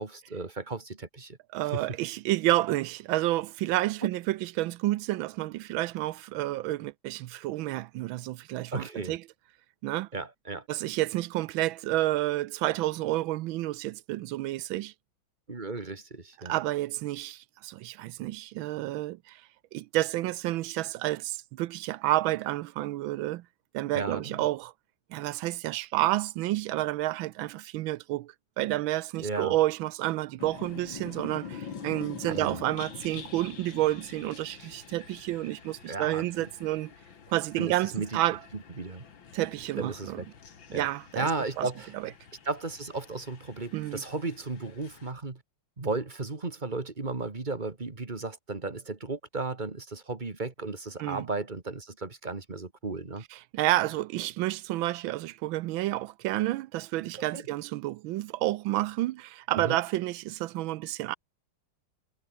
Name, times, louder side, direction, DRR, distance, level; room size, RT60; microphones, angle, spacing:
voice 1, 0.0-1.4 1.7-1.8 8.7-9.2 10.1-10.7 15.5-16.6 23.9-24.5 29.2-29.6 32.3-32.6 35.9-36.5 37.6-38.2 38.5-39.0 39.8-40.3 40.7-40.9 41.2-41.9 42.4-45.4 45.8-53.3 57.3-57.4 59.5-59.8, right 3 dB, 25° right, 1.9 m, -35 dB
voice 2, 1.5-9.2 9.8-10.1 10.7-14.9 16.4-19.4 19.7-23.4 23.7-24.7 25.1-36.9 37.3-38.4 39.3-40.2 40.7-41.3 41.6-41.7 41.9-42.0 43.7-44.0 51.0-51.2 53.5-61.2, right 16 dB, 75° right, 1.3 m, -30 dB
sound 1, 30.4-45.1, left 6 dB, 65° left, 2.8 m, -46 dB
omnidirectional pair, 2.3 m